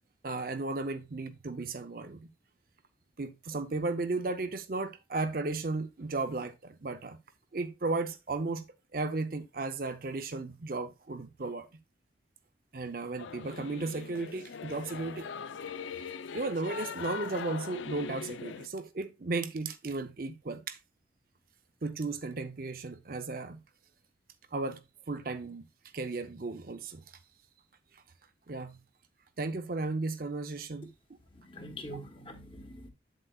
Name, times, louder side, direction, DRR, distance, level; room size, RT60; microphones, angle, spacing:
voice 1, 0.2-2.3 3.2-7.2 7.5-8.7 8.9-11.7 12.7-15.3 16.1-20.8 21.8-23.6 24.5-25.7 25.9-27.0 28.5-28.8 29.4-30.9, right 3 dB, 50° right, 0.6 m, -35 dB
Singing / Musical instrument, 13.2-18.7, left 6 dB, 90° left, 0.5 m, -41 dB
voice 2, 31.3-32.9, equal, 30° left, 1.2 m, -44 dB
8.0 x 7.5 x 2.3 m
head